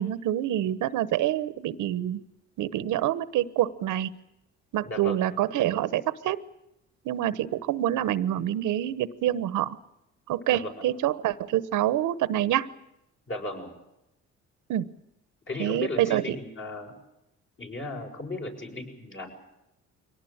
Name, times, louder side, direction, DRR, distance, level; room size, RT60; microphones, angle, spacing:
voice 1, 0.0-2.2 2.6-4.1 4.7-6.4 7.0-9.8 10.3-12.7 14.7-14.9 15.6-16.4, right 12 dB, 85° right, 15 dB, 1.1 m, -26 dB
voice 2, 4.8-5.3 10.5-10.8 13.3-13.7 15.5-17.0 17.6-19.3, left 2 dB, 40° left, 2 dB, 6.9 m, -36 dB
23.5 x 18.5 x 8.8 m, 0.86 s
cardioid pair, 90°, 30 cm